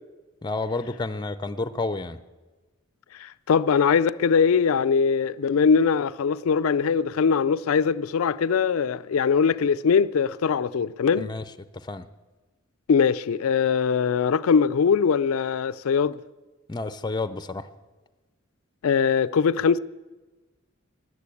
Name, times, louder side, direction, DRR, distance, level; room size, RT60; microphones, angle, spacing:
voice 1, 0.4-2.2 11.2-11.4 11.7-12.1 16.7-17.7, left 3 dB, 20° left, 0.5 m, -30 dB
voice 2, 3.1-11.3 12.9-16.2 18.8-19.8, left 6 dB, 80° left, 0.4 m, -21 dB
15.5 x 11.0 x 8.4 m
head